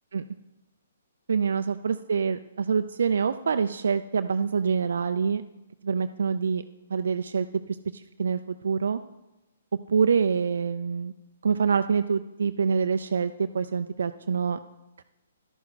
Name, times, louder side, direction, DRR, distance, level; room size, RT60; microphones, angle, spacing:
voice 1, 1.3-5.4 5.8-6.6 6.9-7.5 8.2-9.0 9.9-11.1 11.4-14.6 15.0-15.1, right 6 dB, 70° right, 9 dB, 0.4 m, -25 dB
11.0 x 9.6 x 4.1 m, 0.98 s
hypercardioid pair, 135°, 0 cm